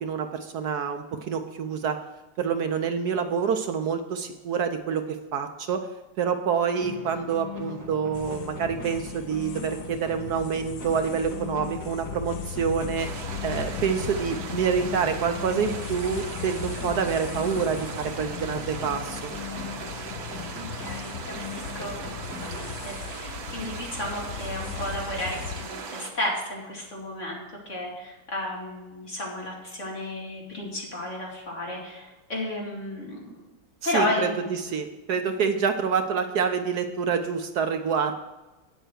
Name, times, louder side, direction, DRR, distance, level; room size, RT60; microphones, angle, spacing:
voice 1, 0.0-2.0 2.4-5.0 5.3-5.9 6.2-13.1 13.4-19.3 33.8-38.1, right 6 dB, 65° right, 7 dB, 1.0 m, -27 dB
sound 1, 6.8-23.3, left 5 dB, 10° left, 1.3 m, -40 dB
sound 2, 8.1-25.7, left 8 dB, 70° left, 0.9 m, -39 dB
sound 3, 13.0-26.1, right 4 dB, 80° right, 2.0 m, -38 dB
voice 2, 20.8-22.0 22.4-33.4 33.8-34.4, left 1 dB, 35° left, -3 dB, 2.8 m, -33 dB
8.8 x 8.0 x 6.3 m, 1.1 s
omnidirectional pair, 2.1 m